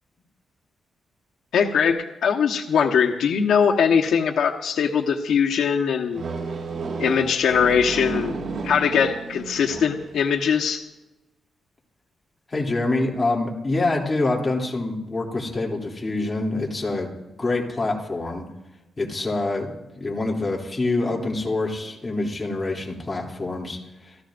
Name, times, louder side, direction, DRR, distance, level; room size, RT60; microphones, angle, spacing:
voice 1, 1.5-6.2 7.0-8.3 8.6-10.8, left 7 dB, 85° left, 3 dB, 1.1 m, -21 dB
sound 1, 6.1-10.2, right 4 dB, 70° right, 5.9 m, -32 dB
voice 2, 12.5-18.5 19.0-24.2, left 2 dB, 20° left, -2 dB, 2.8 m, -26 dB
28.0 x 14.0 x 2.6 m, 0.96 s
wide cardioid pair, 160°, 0 cm